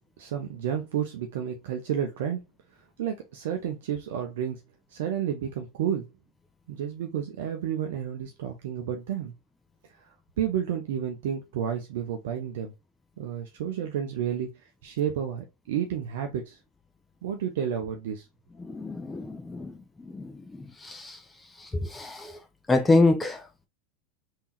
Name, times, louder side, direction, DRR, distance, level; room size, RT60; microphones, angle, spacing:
voice 1, 0.2-2.4 3.0-4.6 4.9-6.1 6.7-9.3 10.4-12.7 13.2-16.6 17.2-18.2, right 9 dB, 65° right, 0.5 m, -31 dB
voice 2, 18.6-19.7 20.0-20.3 20.8-21.2 21.8-22.3 22.7-23.4, left 2 dB, 15° left, 0.5 m, -25 dB
3.5 x 2.7 x 2.9 m
hypercardioid pair, 85°, 0 cm